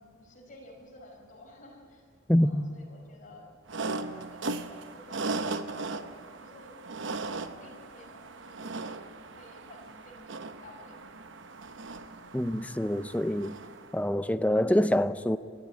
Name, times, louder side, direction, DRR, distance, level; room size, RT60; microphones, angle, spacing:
voice 1, 0.0-2.1 2.4-3.6 4.0-6.1 6.4-6.9 7.6-9.1 9.3-11.2, left 1 dB, 40° left, 5.4 m, -52 dB
voice 2, 2.3-2.6 12.3-13.6 13.9-15.4, left 1 dB, 5° left, 0.5 m, -25 dB
sound 1, 3.7-14.0, right 3 dB, 70° right, 0.9 m, -38 dB
22.0 x 13.5 x 9.6 m
head